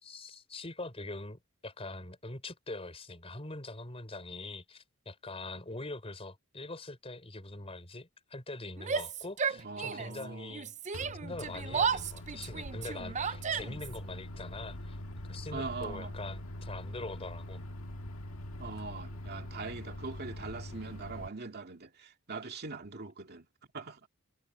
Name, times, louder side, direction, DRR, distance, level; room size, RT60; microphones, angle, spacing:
voice 1, 0.0-10.7 11.2-15.0 15.3-17.6, left 2 dB, 30° left, 4.7 m, -43 dB
Yell, 8.8-10.2 10.5-14.0, right 6 dB, 35° right, 0.6 m, -34 dB
voice 2, 9.6-10.6 15.5-16.1 18.6-23.5 23.7-24.0, right 4 dB, 50° right, 2.3 m, -42 dB
Microwave oven, 10.9-21.3, left 1 dB, 90° left, 1.7 m, -43 dB
head